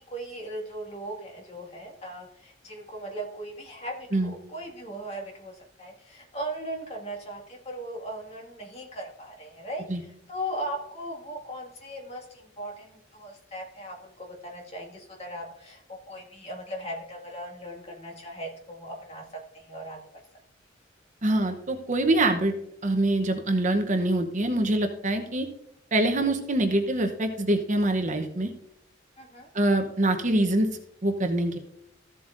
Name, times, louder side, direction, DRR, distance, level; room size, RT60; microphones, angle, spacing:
voice 1, 0.0-19.2 19.5-20.0 29.2-29.5, right 1 dB, 30° left, 0 dB, 2.0 m, -38 dB
voice 2, 21.2-22.5 22.8-25.5 25.9-28.5 29.5-30.7 31.0-31.6, right 1 dB, 40° right, 6 dB, 0.8 m, -24 dB
14.5 x 7.7 x 2.6 m, 0.77 s
head